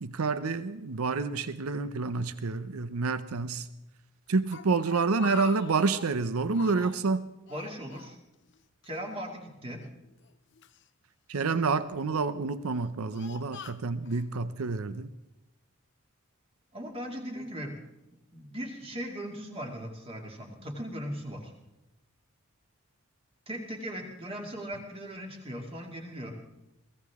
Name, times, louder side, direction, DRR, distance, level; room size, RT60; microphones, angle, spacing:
voice 1, 0.0-3.7 4.3-7.3 11.3-15.1, right 4 dB, 90° right, 13 dB, 0.6 m, -28 dB
Speech, 4.3-6.2 6.5-7.1 7.5-8.6 8.8-9.0 9.8-10.8 11.5-12.0 12.6-14.3, left 6 dB, 55° left, 0.6 m, -44 dB
voice 2, 7.5-8.2 8.8-9.8 16.7-17.7 18.3-21.5 23.5-26.3, equal, 25° right, 1 dB, 2.3 m, -38 dB
23.0 x 16.0 x 3.6 m, 0.94 s
head